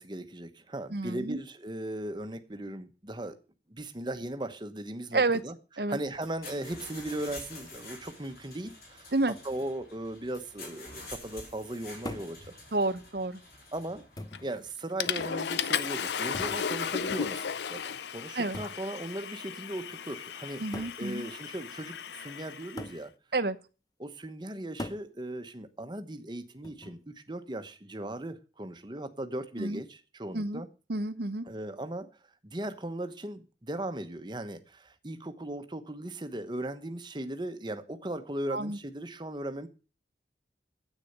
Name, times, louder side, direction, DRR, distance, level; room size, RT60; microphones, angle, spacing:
voice 1, 0.0-3.4 3.7-5.6 5.9-9.1 9.4-12.4 13.7-14.0 14.4-23.1 24.0-30.7 31.4-32.1 32.4-39.7, right 1 dB, 25° right, 1.0 m, -38 dB
voice 2, 0.9-1.4 5.1-5.4 5.8-6.0 9.1-9.3 12.7-13.4 18.4-18.6 20.6-21.2 23.3-23.6 29.6-29.8 30.3-30.6 30.9-31.4 38.5-38.8, right 2 dB, 60° right, 0.9 m, -29 dB
sound 1, 6.1-14.7, left 2 dB, 55° left, 4.5 m, -48 dB
sound 2, 12.0-12.4 13.4-13.5 14.2-14.5 16.3-16.7 18.5-18.8 19.9-20.0 20.7-21.0 22.8-23.1 24.8-25.1 26.6-27.0, left 1 dB, 20° left, 0.9 m, -40 dB
Water / Toilet flush, 14.3-14.6 15.0-22.9, left 7 dB, 75° left, 0.5 m, -35 dB
9.8 x 8.4 x 6.7 m
head